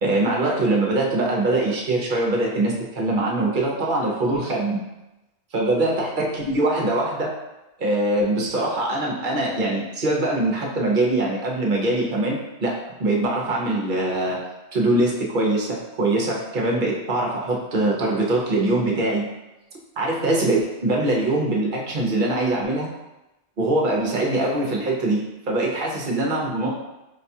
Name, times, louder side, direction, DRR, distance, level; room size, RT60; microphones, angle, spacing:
voice 1, 0.0-4.8 5.5-7.3 7.8-14.4 14.7-19.3 20.0-22.9 23.6-26.7, right 2 dB, 50° right, -2 dB, 0.7 m, -23 dB
5.2 x 2.3 x 2.7 m, 0.98 s
omnidirectional pair, 1.3 m